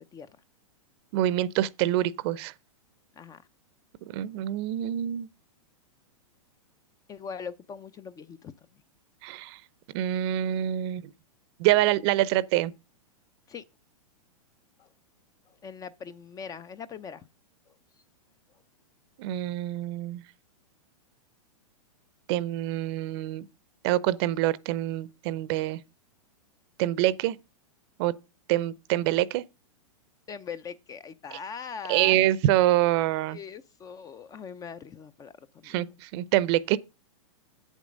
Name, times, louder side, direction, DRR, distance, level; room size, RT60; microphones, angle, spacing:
voice 1, 1.1-2.5 4.1-5.3 9.2-9.6 9.9-11.0 11.6-12.7 19.2-20.2 22.3-23.4 23.8-25.8 26.8-27.4 28.0-28.1 28.5-29.4 31.9-33.4 35.6-36.8, right 14 dB, 45° right, 0.6 m, -25 dB
voice 2, 7.1-8.5 13.5-13.6 14.8-14.9 15.5-17.3 17.7-17.8 30.3-32.2 33.3-35.3 35.6-35.8, left 6 dB, 20° left, 0.5 m, -41 dB
8.4 x 7.3 x 5.2 m
hypercardioid pair, 125°, 19 cm